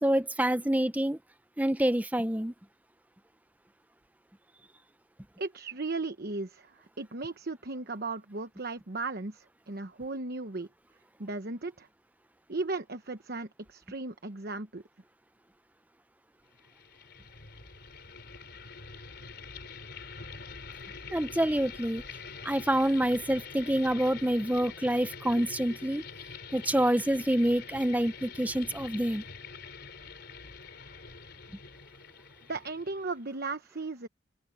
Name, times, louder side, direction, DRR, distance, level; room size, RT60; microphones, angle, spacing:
voice 1, 0.0-1.2 1.6-2.5 21.1-22.0 22.4-26.0 26.5-29.2, right 1 dB, 10° right, 0.7 m, -27 dB
voice 2, 5.4-10.7 11.2-11.9 12.5-14.8 32.5-34.1, right 3 dB, 50° right, 1.1 m, -36 dB
sound 1, 16.5-33.2, left 5 dB, 55° left, 4.7 m, -45 dB
open air
head